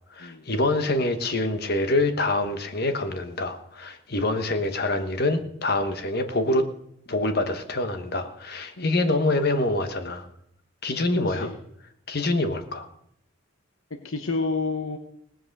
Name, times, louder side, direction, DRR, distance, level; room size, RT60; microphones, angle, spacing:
voice 1, 0.1-6.7 7.1-10.2 10.8-11.5 12.1-12.9, left 2 dB, 45° left, 8 dB, 1.2 m, -25 dB
voice 2, 14.0-15.0, left 3 dB, 70° left, 6 dB, 1.0 m, -29 dB
17.5 x 7.7 x 6.7 m, 0.75 s
head